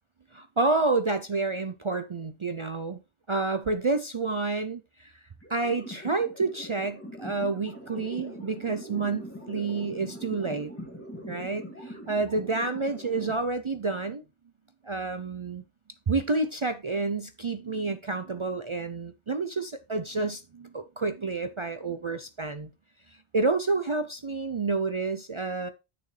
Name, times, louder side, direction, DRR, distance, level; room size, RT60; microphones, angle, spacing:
voice 1, 0.3-3.0 3.3-5.1 5.5-10.7 11.3-14.2 14.8-15.6 16.1-22.7 23.3-25.7, right 3 dB, 50° right, 0.3 m, -29 dB
sound 1, 5.4-13.3, equal, 10° left, 2.6 m, -42 dB
8.6 x 6.6 x 3.2 m
omnidirectional pair, 1.2 m